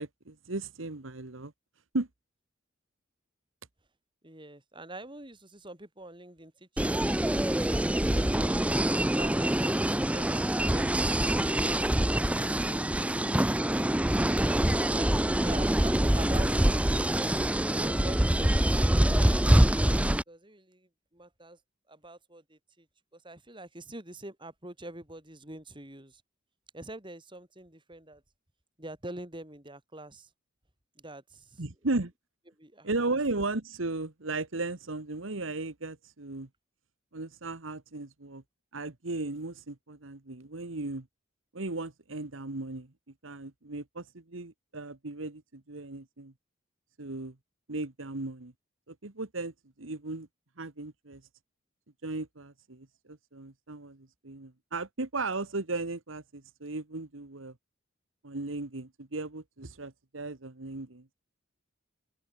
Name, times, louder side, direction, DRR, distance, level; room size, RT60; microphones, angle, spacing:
voice 1, 0.0-1.5 1.9-2.1 31.6-32.1 32.8-36.5 37.1-38.4 38.7-41.1 41.5-42.9 43.2-46.3 47.0-47.3 47.7-48.5 48.9-49.5 49.8-50.3 50.6-51.2 52.0-57.5 58.2-61.1, right 2 dB, 80° right, 1.5 m, -36 dB
voice 2, 4.2-7.1 7.5-8.7 9.1-9.5 9.8-12.1 12.6-13.3 13.7-18.8 20.3-21.6 21.9-22.9 23.1-26.2 26.7-28.2 28.8-30.3 31.0-31.6 32.6-32.9, right 1 dB, 25° right, 5.8 m, -45 dB
sound 1, 6.8-20.2, right 1 dB, 5° right, 0.6 m, -25 dB
open air
head